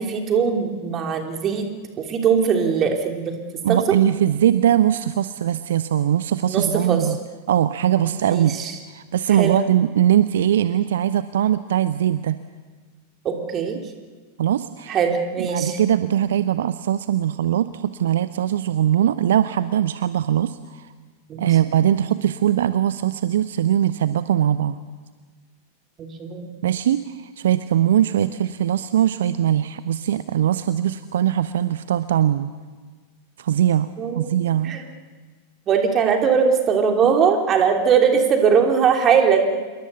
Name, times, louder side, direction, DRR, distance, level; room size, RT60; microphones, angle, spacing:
voice 1, 0.0-1.7 2.0-3.3 3.7-3.8 6.5-7.0 8.0-8.7 9.3-9.5 13.2-13.8 14.9-15.8 21.3-21.5 26.0-26.5 34.0-34.3 34.6-34.8 35.7-39.6, right 6 dB, 30° right, 4 dB, 3.3 m, -20 dB
voice 2, 3.6-7.2 7.5-8.6 8.9-12.4 14.4-15.0 15.4-20.9 21.4-24.8 26.6-32.5 33.4-34.8, right 10 dB, 60° right, 14 dB, 0.7 m, -21 dB
27.5 x 22.5 x 6.9 m, 1.4 s
figure-of-eight pair, 90°, 0 cm